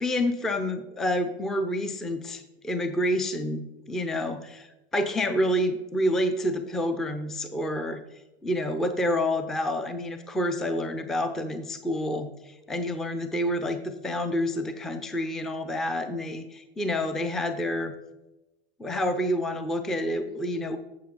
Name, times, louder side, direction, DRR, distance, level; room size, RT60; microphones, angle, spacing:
voice 1, 0.0-4.7 4.9-8.0 8.4-17.9 18.8-20.8, left 1 dB, ahead, 9 dB, 0.4 m, -28 dB
8.3 x 7.1 x 3.8 m, 0.99 s
hypercardioid pair, 110°, 30 cm